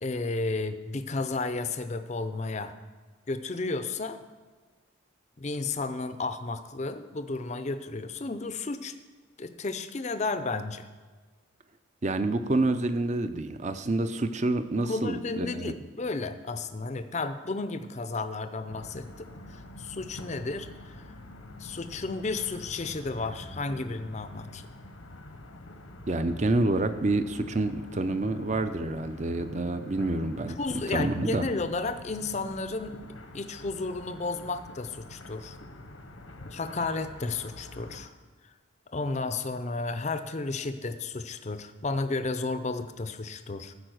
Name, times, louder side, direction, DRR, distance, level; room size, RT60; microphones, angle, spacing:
voice 1, 0.0-2.7 3.3-4.2 5.4-8.9 9.4-10.9 14.8-20.9 21.6-24.6 30.6-32.9 33.3-35.6 36.5-38.1 38.9-43.7, left 3 dB, 35° left, 10 dB, 0.5 m, -33 dB
voice 2, 12.0-15.7 26.1-31.5, right 2 dB, 35° right, 10 dB, 0.6 m, -28 dB
sound 1, 18.7-38.1, left 1 dB, 80° left, 1.1 m, -46 dB
13.5 x 5.0 x 6.4 m, 1.4 s
head